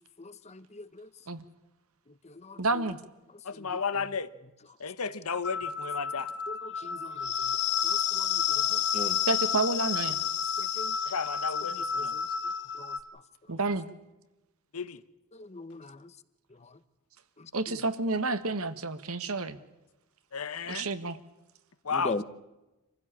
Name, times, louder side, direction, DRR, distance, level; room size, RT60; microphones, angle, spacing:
voice 1, 0.2-1.1 2.2-2.6 3.5-3.8 6.5-7.3 7.8-8.4 8.7-9.2 10.6-10.9 11.7-12.2 12.8-13.0 15.3-16.1 21.9-22.2, left 2 dB, 30° left, 1.0 m, -40 dB
voice 2, 2.6-3.0 9.3-10.2 13.5-13.9 17.5-19.6 20.7-21.2, right 3 dB, 70° right, 1.6 m, -29 dB
voice 3, 3.4-4.3 4.8-6.3 11.1-12.1 14.7-15.0 20.3-20.9 21.8-22.2, left 5 dB, 70° left, 1.2 m, -33 dB
sound 1, 5.4-13.0, left 8 dB, 55° left, 1.6 m, -30 dB
27.0 x 15.5 x 8.7 m
head